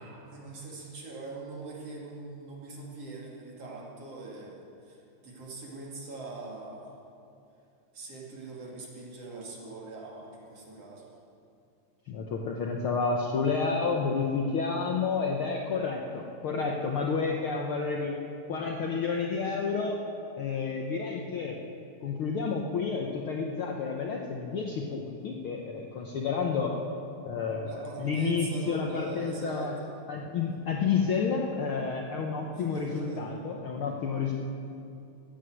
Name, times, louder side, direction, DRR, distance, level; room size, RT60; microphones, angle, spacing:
voice 1, 0.0-7.0 7.9-11.1 27.7-29.9 32.5-33.2, right 3 dB, 55° right, -4 dB, 3.4 m, -42 dB
voice 2, 12.1-18.2 18.5-20.0 20.4-21.6 22.0-26.7 27.2-27.7 28.0-29.8 30.1-34.3, left 5 dB, 65° left, 1 dB, 1.4 m, -30 dB
15.0 x 9.6 x 7.7 m, 2.6 s
omnidirectional pair, 3.4 m